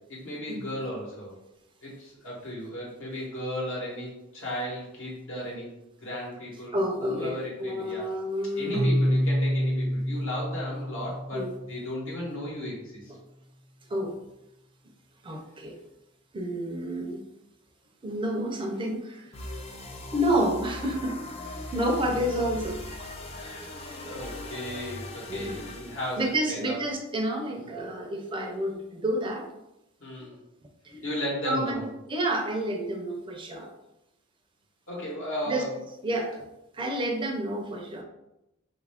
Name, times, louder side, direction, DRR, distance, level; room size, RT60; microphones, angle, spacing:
voice 1, 0.0-1.4 1.8-5.7 6.0-8.1 8.6-12.8 21.6-21.7 23.3-26.2 26.5-26.8 27.6-27.7 30.0-30.4 31.0-31.8 34.9-35.8, equal, 65° left, -4 dB, 1.0 m, -35 dB
voice 2, 6.7-8.9 11.3-11.5 13.9-14.1 15.2-15.8 16.3-17.2 18.0-19.3 20.1-21.2 21.7-23.1 25.3-25.6 26.2-29.5 30.8-31.1 31.4-33.7 35.5-35.6 36.0-36.4 36.7-38.0, right 1 dB, 25° right, 2 dB, 0.5 m, -29 dB
Keyboard (musical), 8.7-12.4, equal, 80° right, 0.7 m, -28 dB
sound 1, 19.3-26.4, left 1 dB, 30° left, 0.4 m, -39 dB
3.1 x 2.4 x 3.4 m, 0.90 s
head